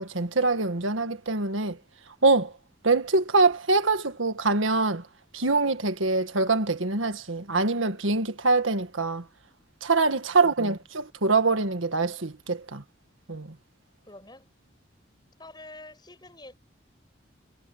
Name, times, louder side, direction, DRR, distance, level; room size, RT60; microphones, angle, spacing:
voice 1, 0.0-1.8 2.2-2.5 2.8-5.0 5.3-9.2 9.8-12.8 13.3-13.5, right 3 dB, 85° right, 1.7 m, -24 dB
voice 2, 14.1-14.5 15.4-16.5, left 2 dB, 20° left, 7.6 m, -46 dB
head